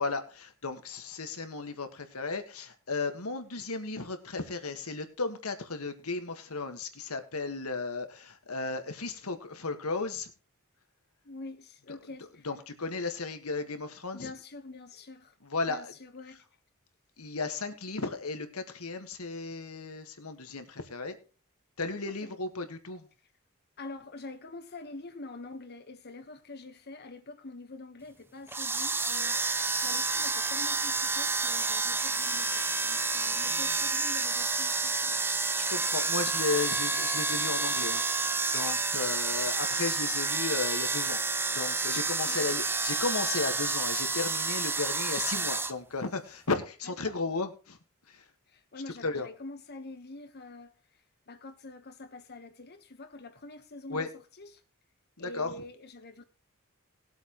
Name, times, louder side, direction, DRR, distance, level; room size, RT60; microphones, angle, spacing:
voice 1, 0.0-10.3 12.4-14.3 15.4-15.9 17.2-21.2 21.8-23.1 33.3-33.6 35.6-38.0 38.5-41.2 41.5-47.8 48.1-48.2 49.0-49.3 53.9-54.1 55.2-55.5, left 3 dB, 85° left, 1.6 m, -34 dB
voice 2, 11.2-12.5 14.1-15.4 15.7-16.4 22.1-22.3 23.8-35.2 42.2-42.5 47.0-47.2 48.5-54.6 55.2-56.2, left 2 dB, 50° left, 1.2 m, -46 dB
sound 1, 28.5-45.7, right 3 dB, 10° right, 0.5 m, -29 dB
20.0 x 8.0 x 3.1 m
head